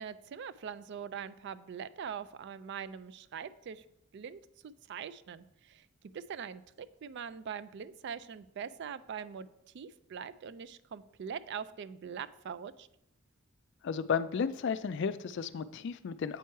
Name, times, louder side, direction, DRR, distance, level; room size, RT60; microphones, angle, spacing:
voice 1, 0.0-3.8 4.1-5.9 6.1-6.6 7.0-9.5 9.7-12.9, right 7 dB, 55° right, 15 dB, 0.3 m, -42 dB
voice 2, 13.8-16.4, left 6 dB, 55° left, 14 dB, 0.3 m, -33 dB
8.2 x 4.6 x 4.6 m, 0.80 s
head